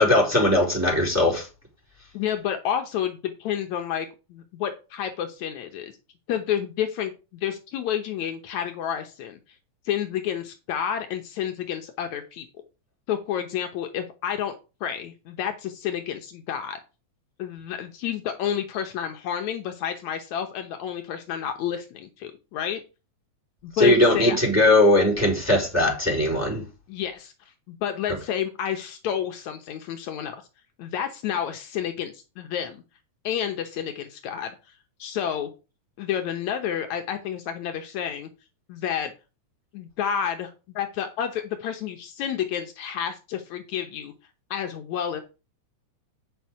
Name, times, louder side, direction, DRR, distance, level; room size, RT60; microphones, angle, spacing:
voice 1, 0.0-1.5 23.8-26.6, left 1 dB, 5° right, 3.5 m, -19 dB
voice 2, 2.1-5.9 6.3-9.4 9.9-12.5 13.1-14.5 14.8-16.8 17.4-22.8 23.6-24.4 26.9-27.3 27.7-30.4 30.8-32.8 33.2-34.6 35.0-35.5 36.0-38.3 38.7-39.1 39.7-44.1 44.5-45.2, left 9 dB, 75° left, 2.3 m, -30 dB
8.9 x 6.1 x 4.8 m
omnidirectional pair, 3.4 m